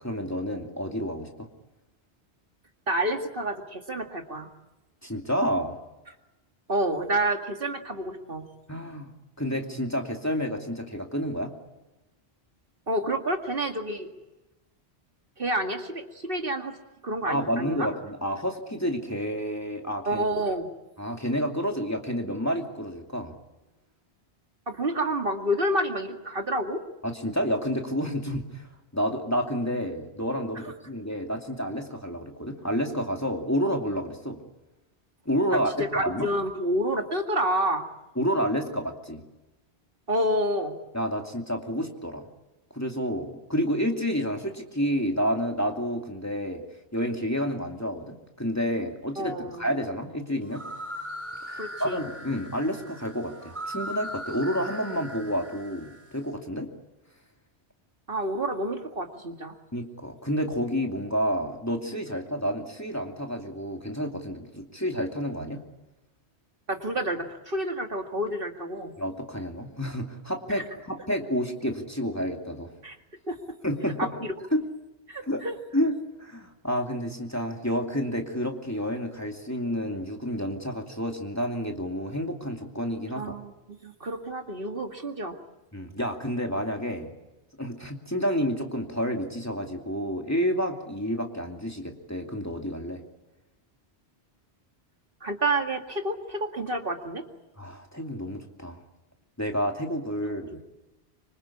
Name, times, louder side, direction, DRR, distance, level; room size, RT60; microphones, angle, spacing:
voice 1, 0.0-1.5 5.0-5.8 8.7-9.1 9.4-11.5 17.2-20.2 21.0-23.3 27.0-28.7 28.9-34.4 35.3-36.3 38.2-39.2 40.9-42.3 42.7-46.6 46.9-50.6 51.4-56.7 59.7-65.6 69.0-72.7 73.6-74.1 74.5-74.6 75.2-75.4 75.7-83.3 85.7-87.1 87.6-93.0 97.6-98.8 99.4-100.6, equal, 15° left, 2 dB, 2.6 m, -29 dB
voice 2, 2.9-4.5 6.7-8.4 12.9-14.1 15.4-16.8 17.0-17.9 20.1-20.7 24.7-26.8 30.6-30.7 35.5-37.9 40.1-40.7 49.2-49.6 51.6-52.0 58.1-59.5 66.7-68.9 70.5-70.6 72.8-73.0 73.3-73.4 74.0-74.3 75.1-75.6 83.1-85.4 95.2-97.2 100.2-100.3, right 1 dB, 55° right, 4 dB, 2.4 m, -29 dB
sound 1, 50.4-56.2, equal, 10° right, 4.9 m, -39 dB
25.5 x 25.5 x 8.6 m, 1.0 s
omnidirectional pair, 1.1 m